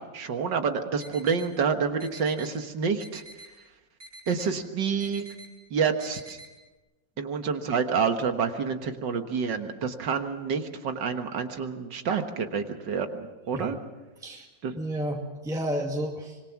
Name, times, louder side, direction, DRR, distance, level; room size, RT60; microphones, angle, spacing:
voice 1, 0.1-3.2 4.3-5.3 5.7-6.4 7.2-13.8 14.6-14.7, right 6 dB, 75° right, 6 dB, 2.1 m, -28 dB
sound 1, 1.0-1.5 2.0-2.5 3.0-3.5 4.0-4.5 5.0-5.5 6.0-6.5, right 1 dB, 55° right, 5.4 m, -46 dB
voice 2, 14.7-16.4, equal, ahead, 0 dB, 1.9 m, -31 dB
25.5 x 21.5 x 5.9 m, 1.1 s
omnidirectional pair, 1.9 m